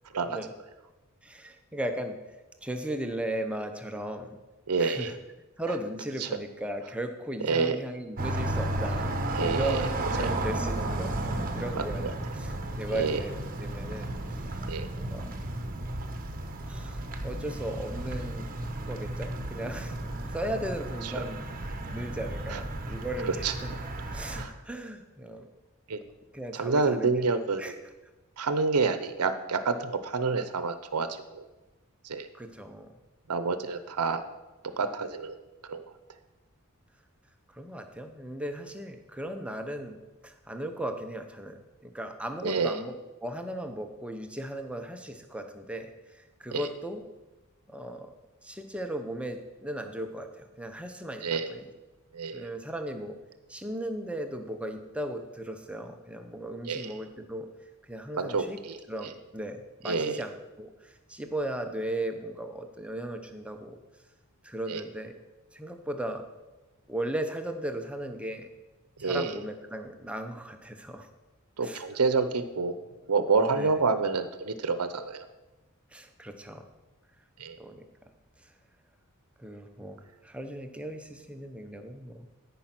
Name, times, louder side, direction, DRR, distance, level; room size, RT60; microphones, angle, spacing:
voice 1, 1.2-2.2 2.6-4.4 4.8-5.2 5.6-13.3 13.6-14.5 14.9-15.3 16.6-18.5 18.8-20.0 20.3-21.4 21.8-23.5 24.1-25.5 26.3-27.1 27.6-27.7 32.3-32.9 37.5-40.0 40.2-42.9 43.2-47.0 47.7-48.1 48.4-51.7 52.3-53.2 53.5-57.5 57.8-58.6 58.9-63.8 64.4-65.2 65.5-66.2 66.9-68.5 69.0-71.1 71.6-71.8 73.5-73.7 75.9-76.6 77.6-77.9 78.4-78.5 79.4-82.3, right 1 dB, 5° right, 5 dB, 0.8 m, -37 dB
voice 2, 4.7-5.1 6.2-6.3 7.4-7.8 9.4-9.9 10.2-10.3 11.8-12.1 12.9-13.2 14.7-14.9 21.0-21.2 22.5-22.6 23.2-23.5 24.3-24.5 25.9-26.0 26.5-27.8 28.4-31.5 32.0-32.3 33.3-34.2 34.6-35.4 35.6-35.8 42.4-42.8 46.5-46.7 51.2-51.5 52.1-52.5 56.7-56.9 58.2-59.1 59.8-60.2 64.7-64.8 69.0-69.4 71.6-72.8 73.1-75.3 77.4-77.6, right 4 dB, 85° right, 11 dB, 0.7 m, -28 dB
sound 1, 8.2-24.5, right 1 dB, 40° right, 1.0 m, -33 dB
13.0 x 5.5 x 5.9 m, 1.1 s
head